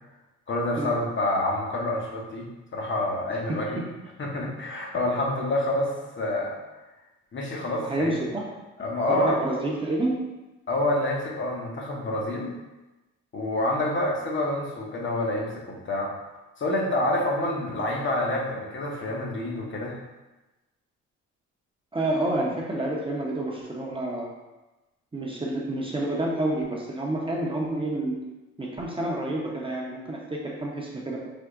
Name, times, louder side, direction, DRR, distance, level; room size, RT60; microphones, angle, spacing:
voice 1, 0.5-2.5 2.7-3.8 4.2-6.6 7.3-8.1 8.8-9.3 10.7-12.5 13.3-16.1 16.6-20.0, left 1 dB, 40° left, -1 dB, 0.7 m, -27 dB
voice 2, 3.5-3.8 7.8-8.5 9.0-10.1 21.9-24.3 25.1-28.2 28.6-31.2, right 1 dB, 15° right, -3 dB, 0.6 m, -29 dB
3.5 x 2.1 x 3.7 m, 1.1 s
cardioid pair, 90°, 30 cm